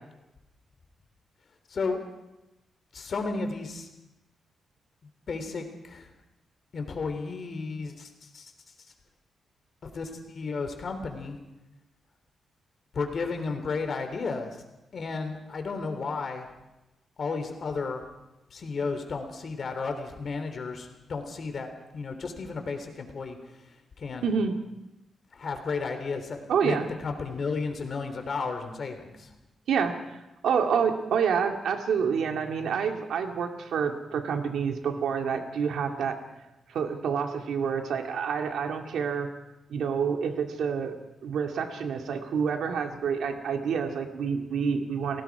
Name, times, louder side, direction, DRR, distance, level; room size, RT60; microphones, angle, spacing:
voice 1, 1.7-2.0 2.9-3.9 5.3-6.1 6.7-8.5 9.8-11.4 12.9-14.6 14.9-16.5 17.2-18.1 18.5-21.7 21.9-23.4 24.0-24.3 25.3-29.3, left 4 dB, 45° left, 6 dB, 3.4 m, -33 dB
voice 2, 24.2-24.6 26.5-26.9 29.7-30.2 30.4-36.2 36.7-39.3 39.7-41.0 41.2-45.2, right 6 dB, 85° right, 4 dB, 2.3 m, -28 dB
29.5 x 18.5 x 4.9 m, 0.95 s
wide cardioid pair, 145°, 0 cm